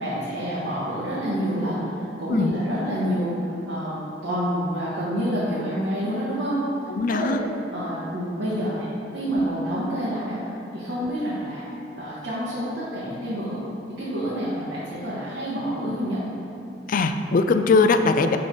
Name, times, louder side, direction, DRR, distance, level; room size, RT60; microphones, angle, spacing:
voice 1, 0.0-6.6 7.1-7.4 7.7-8.9 9.1-10.5 10.7-11.6 11.9-13.6 13.9-16.2, equal, 75° right, -11 dB, 1.6 m, -28 dB
voice 2, 6.9-7.4 16.9-18.4, left 3 dB, 45° left, 8 dB, 0.3 m, -20 dB
10.0 x 3.8 x 3.8 m, 2.7 s
head